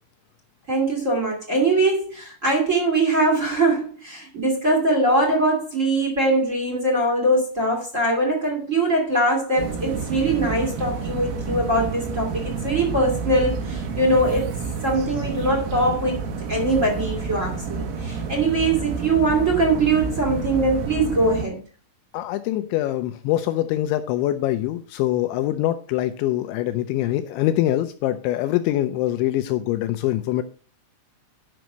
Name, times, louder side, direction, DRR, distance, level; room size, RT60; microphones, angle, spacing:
voice 1, 0.7-14.5 14.8-16.2 16.5-21.6, right 2 dB, 35° right, 1 dB, 1.2 m, -22 dB
sound 1, 9.6-21.4, right 5 dB, 75° right, 4.4 m, -29 dB
voice 2, 22.1-30.4, left 14 dB, 85° left, 10 dB, 2.6 m, -24 dB
11.5 x 6.1 x 5.1 m, 0.39 s
omnidirectional pair, 6.0 m